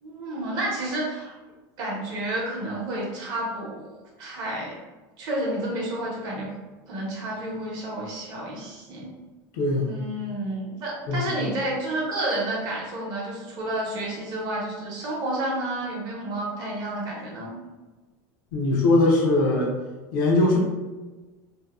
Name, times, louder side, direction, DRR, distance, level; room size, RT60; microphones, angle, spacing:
voice 1, 0.0-1.3 1.8-4.7 5.2-6.5 6.9-9.1 9.9-17.5, right 1 dB, 40° right, -4 dB, 0.8 m, -30 dB
voice 2, 9.5-9.9 11.1-11.3 18.5-19.7 20.1-20.6, left 2 dB, 85° left, -2 dB, 0.6 m, -21 dB
2.7 x 2.0 x 2.3 m, 1.2 s
cardioid pair, 165°, 11 cm